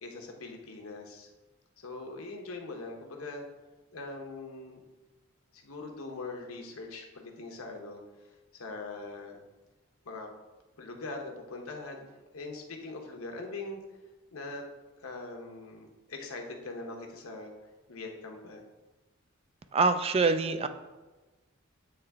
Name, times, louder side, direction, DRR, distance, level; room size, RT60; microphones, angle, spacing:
voice 1, 0.0-1.3 1.8-3.5 3.9-4.8 5.5-8.0 8.5-9.4 10.0-10.3 10.8-12.1 12.3-13.8 14.3-14.6 15.0-17.5 17.9-18.6, left 3 dB, 80° left, 2 dB, 0.9 m, -41 dB
voice 2, 19.7-20.7, right 4 dB, 30° right, 9 dB, 0.3 m, -25 dB
8.5 x 3.3 x 3.5 m, 1.2 s
head